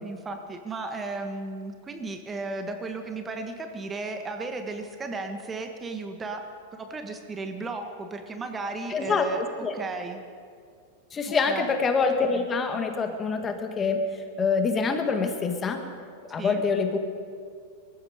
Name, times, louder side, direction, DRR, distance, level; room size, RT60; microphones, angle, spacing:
voice 1, 0.0-6.4 6.7-9.4 9.7-10.2 11.2-11.7 16.4-16.6, right 3 dB, 20° right, 5 dB, 1.4 m, -35 dB
voice 2, 8.9-9.3 9.6-9.7 11.1-14.0 14.4-15.8 16.3-17.0, left 5 dB, 25° left, 5 dB, 1.7 m, -25 dB
19.5 x 14.5 x 5.0 m, 2.2 s
hypercardioid pair, 105°, 0 cm